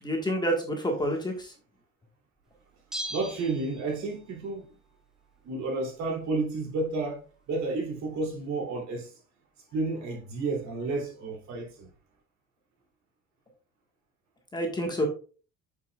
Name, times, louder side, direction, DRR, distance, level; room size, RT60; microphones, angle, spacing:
voice 1, 0.0-1.5 14.5-15.1, equal, 15° left, 1.5 m, -28 dB
Bell, 2.9-4.3 4.6-4.7, equal, ahead, 1.1 m, -39 dB
voice 2, 3.1-4.6 5.4-7.2 7.5-9.1 9.7-11.9, right 3 dB, 60° right, 2.9 m, -31 dB
8.1 x 5.9 x 2.3 m
cardioid pair, 135°, 31 cm